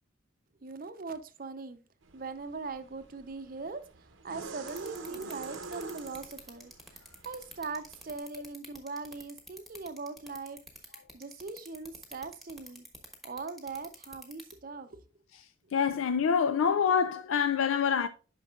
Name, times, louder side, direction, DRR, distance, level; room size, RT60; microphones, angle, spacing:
voice 1, 0.6-1.8 2.1-10.6 11.1-12.9 13.2-15.0 15.6-15.8, right 4 dB, 45° right, 0.6 m, -41 dB
sound 1, 2.0-8.2, right 4 dB, 75° right, 0.9 m, -46 dB
sound 2, 4.7-14.5, right 1 dB, ahead, 1.1 m, -47 dB
voice 2, 15.7-18.1, left 7 dB, 90° left, 0.4 m, -26 dB
9.1 x 5.9 x 2.4 m
head